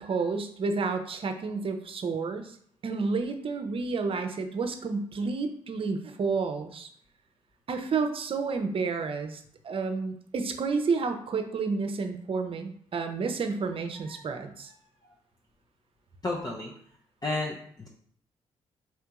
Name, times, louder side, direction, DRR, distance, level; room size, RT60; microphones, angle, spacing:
voice 1, 0.0-2.6 2.8-6.9 7.7-14.7, right 4 dB, 50° right, 6 dB, 0.7 m, -30 dB
voice 2, 16.2-16.7 17.2-17.9, left 2 dB, 30° left, -2 dB, 0.8 m, -32 dB
4.3 x 2.8 x 3.6 m, 0.62 s
supercardioid pair, 55°, 12 cm